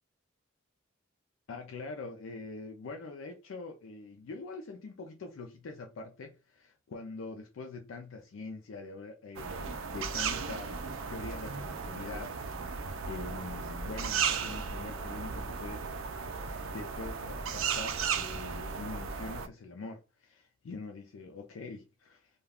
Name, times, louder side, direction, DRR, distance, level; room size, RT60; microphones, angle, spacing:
voice 1, 1.5-10.8 11.1-15.8 16.3-22.3, left 3 dB, 75° left, 0.4 m, -44 dB
sound 1, 9.3-19.5, right 6 dB, 80° right, 0.4 m, -35 dB
2.3 x 2.2 x 3.4 m
head